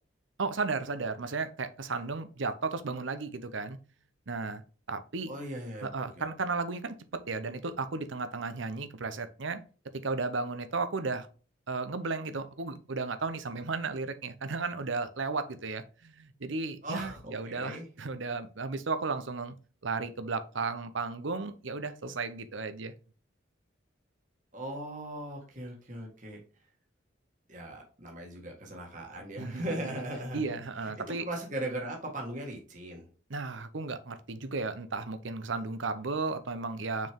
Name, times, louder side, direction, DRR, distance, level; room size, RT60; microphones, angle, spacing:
voice 1, 0.4-3.8 4.3-4.6 4.9-5.3 5.8-9.6 9.9-11.3 11.7-19.5 19.8-23.0 29.4-29.9 30.3-31.2 33.3-37.1, right 4 dB, 75° right, 0.8 m, -34 dB
voice 2, 5.3-6.3 16.8-17.9 24.5-26.4 27.5-33.1, right 1 dB, 40° right, 1.7 m, -39 dB
6.1 x 4.6 x 3.6 m
head